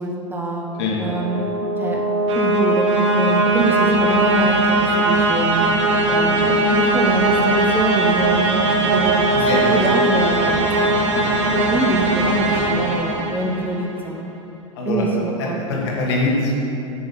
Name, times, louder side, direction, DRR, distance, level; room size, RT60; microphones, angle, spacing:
voice 1, 0.0-0.6 1.0-2.0 2.3-5.7 6.1-10.9 11.6-14.3 14.8-15.9, right 2 dB, 10° right, 0 dB, 0.9 m, -24 dB
sound 1, 0.8-13.9, right 2 dB, 60° right, 1.4 m, -19 dB
voice 2, 9.3-9.8 10.6-10.7 11.1-11.4 14.8-15.0 15.4-16.5, left 3 dB, 50° left, -3 dB, 2.5 m, -23 dB
9.4 x 6.6 x 5.7 m, 2.8 s
figure-of-eight pair, 90°, 17 cm